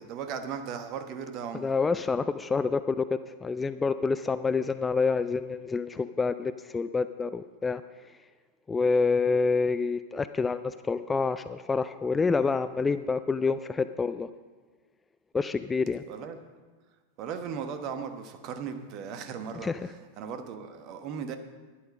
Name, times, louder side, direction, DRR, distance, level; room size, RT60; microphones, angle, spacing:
voice 1, 0.0-1.7 16.1-16.4 17.2-21.4, right 7 dB, 40° right, 7 dB, 1.2 m, -37 dB
voice 2, 1.5-7.8 8.7-14.3 15.3-16.0 19.6-19.9, left 4 dB, 15° left, 12 dB, 0.3 m, -27 dB
11.5 x 10.5 x 5.2 m, 1.4 s
figure-of-eight pair, 90°, 0 cm